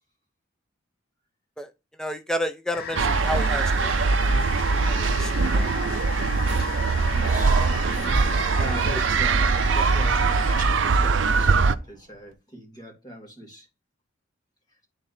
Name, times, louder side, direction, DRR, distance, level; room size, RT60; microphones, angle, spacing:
voice 1, 2.0-3.7 4.8-5.7 8.1-8.2, equal, 5° left, 0.5 m, -31 dB
sound 1, 2.7-10.7, left 7 dB, 50° left, 0.6 m, -36 dB
sound 2, 3.0-11.8, right 4 dB, 65° right, 0.5 m, -22 dB
voice 2, 7.1-8.2 8.6-13.7, equal, 20° left, 2.5 m, -40 dB
Human voice, 7.1-9.1 10.0-11.7, right 3 dB, 45° right, 1.2 m, -31 dB
11.5 x 4.0 x 2.7 m
head